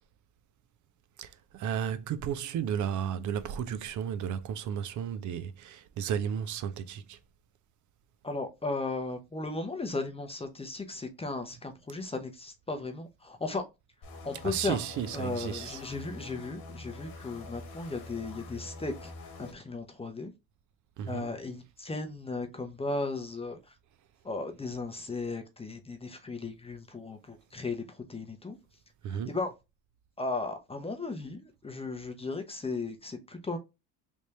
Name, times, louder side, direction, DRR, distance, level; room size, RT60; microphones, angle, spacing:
voice 1, 1.2-7.2 14.4-15.8 21.0-21.3 29.0-29.4, right 8 dB, 45° right, 0.5 m, -33 dB
voice 2, 8.2-13.6 14.2-14.8 15.1-19.1 19.4-20.3 21.1-23.6 24.2-27.8 28.1-28.6 29.1-29.5 30.2-33.6, left 3 dB, 15° left, 0.7 m, -36 dB
sound 1, 14.0-19.5, left 2 dB, 55° left, 1.3 m, -45 dB
3.5 x 2.6 x 3.1 m
supercardioid pair, 80°, 45 cm